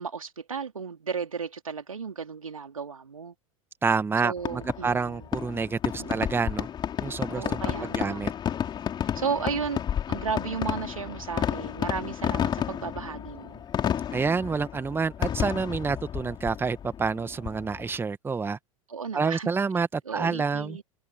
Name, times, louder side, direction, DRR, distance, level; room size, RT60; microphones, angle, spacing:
voice 1, 0.0-3.3 4.2-5.3 6.0-6.4 7.3-8.2 9.0-9.8 10.1-13.7 18.9-19.5 20.0-20.8, right 6 dB, 75° right, 3.1 m, -34 dB
voice 2, 3.8-6.7 7.0-7.6 7.9-8.3 14.1-18.6 19.1-20.8, right 5 dB, 10° right, 1.9 m, -28 dB
Fireworks, 4.4-18.0, left 9 dB, 25° left, 4.8 m, -31 dB
figure-of-eight pair, 90°, 18 cm